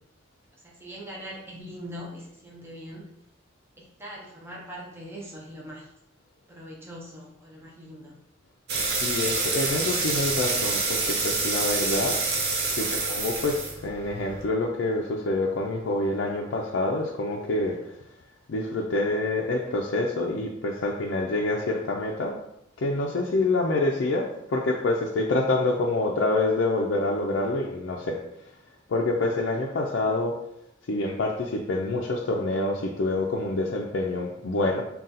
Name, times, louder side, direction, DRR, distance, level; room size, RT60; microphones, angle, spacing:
voice 1, 0.6-3.0 3.8-5.9 6.5-8.1, equal, 10° right, -4 dB, 0.6 m, -41 dB
sound 1, 8.7-14.4, right 3 dB, 55° right, 0.7 m, -27 dB
voice 2, 8.9-12.2 12.7-18.0 18.5-22.4 22.8-28.5 28.9-30.4 30.9-34.8, left 2 dB, 65° left, -1 dB, 0.4 m, -27 dB
3.7 x 2.3 x 4.0 m, 0.80 s
head